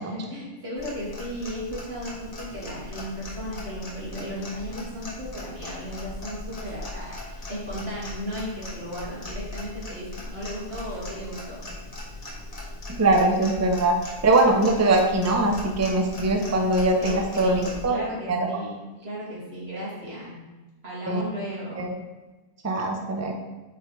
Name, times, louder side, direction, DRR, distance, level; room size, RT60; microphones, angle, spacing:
voice 1, 0.0-11.6 17.0-20.4 20.8-21.9, equal, 45° right, -7 dB, 2.6 m, -35 dB
Clock, 0.8-17.8, left 1 dB, 30° left, 1.3 m, -39 dB
voice 2, 13.0-14.0 14.2-18.0 18.3-18.5 19.7-19.8 21.1-21.2 21.7-22.0 22.6-23.3, right 2 dB, 20° right, 2 dB, 0.4 m, -22 dB
8.2 x 4.8 x 3.3 m, 1.2 s
omnidirectional pair, 1.5 m